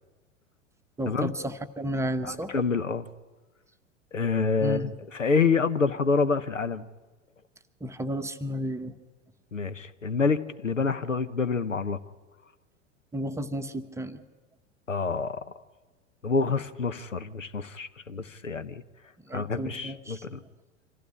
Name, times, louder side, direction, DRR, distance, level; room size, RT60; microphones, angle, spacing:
voice 1, 1.0-2.5 4.6-4.9 7.8-8.9 13.1-14.2 19.3-20.2, equal, 10° right, 7 dB, 1.0 m, -32 dB
voice 2, 2.2-3.1 4.1-6.8 9.5-12.0 14.9-15.4 16.2-18.8 19.3-20.4, left 4 dB, 85° left, 14 dB, 1.0 m, -27 dB
25.0 x 15.5 x 9.9 m, 1.3 s
figure-of-eight pair, 90°, 37 cm